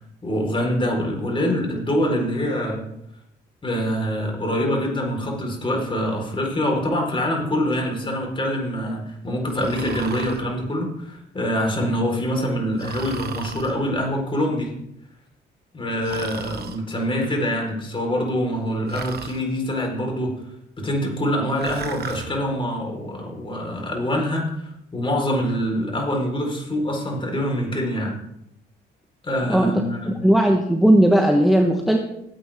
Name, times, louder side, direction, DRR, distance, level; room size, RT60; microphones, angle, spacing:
voice 1, 0.2-2.9 3.6-14.7 15.7-20.3 20.8-28.1 29.2-30.1, equal, 25° left, 0 dB, 4.4 m, -25 dB
Breathing, 9.5-10.4 12.8-13.7 16.0-16.8 18.9-19.4 21.6-22.3, right 6 dB, 55° right, 1.2 m, -35 dB
voice 2, 29.5-32.0, right 1 dB, ahead, 1 dB, 1.3 m, -17 dB
15.5 x 8.7 x 3.6 m, 0.78 s
cardioid pair, 90°, 20 cm